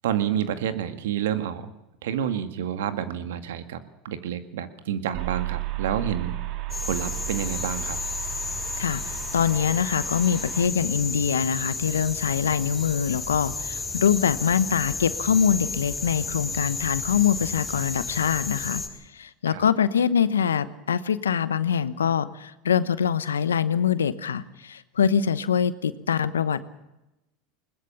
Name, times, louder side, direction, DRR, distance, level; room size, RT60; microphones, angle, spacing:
voice 1, 0.0-1.7 2.0-6.3 6.8-8.0 19.5-19.7, right 9 dB, 75° right, 10 dB, 1.9 m, -29 dB
sound 1, 5.1-10.7, right 18 dB, 55° right, 1.9 m, -34 dB
sound 2, 6.7-18.9, left 4 dB, 15° left, 7.0 m, -32 dB
voice 2, 8.8-18.8 19.1-26.6, left 8 dB, 90° left, 15 dB, 1.0 m, -24 dB
21.5 x 20.5 x 7.1 m, 0.93 s
hypercardioid pair, 90°, 0 cm